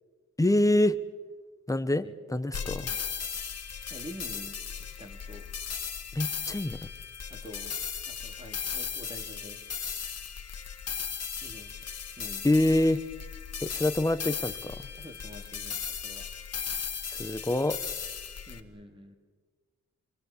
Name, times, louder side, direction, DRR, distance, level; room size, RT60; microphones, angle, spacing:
voice 1, 0.4-1.0 1.7-2.9 6.1-6.8 12.4-13.0 13.6-14.7 17.2-17.8, left 1 dB, 10° left, 11 dB, 1.1 m, -25 dB
sound 1, 2.5-18.6, left 7 dB, 55° left, 1.7 m, -37 dB
voice 2, 2.6-3.0 3.9-4.6 5.0-5.5 7.3-7.8 8.1-9.6 11.4-11.8 12.2-12.4 15.0-16.3 18.5-19.1, equal, 15° right, 4 dB, 2.6 m, -46 dB
27.5 x 24.0 x 7.3 m, 1.4 s
wide cardioid pair, 125°, 30 cm